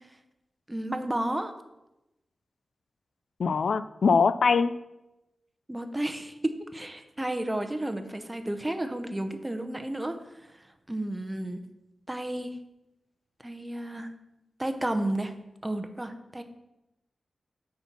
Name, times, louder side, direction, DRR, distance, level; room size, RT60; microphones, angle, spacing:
voice 1, 0.7-1.5 5.7-10.5 10.9-11.6 12.1-12.6 13.4-14.1 14.6-15.3 15.6-16.4, right 1 dB, 15° right, 8 dB, 0.7 m, -32 dB
voice 2, 3.4-4.7, left 5 dB, 75° left, 14 dB, 0.3 m, -22 dB
9.2 x 4.4 x 5.9 m, 0.95 s
wide cardioid pair, 100°, 0 cm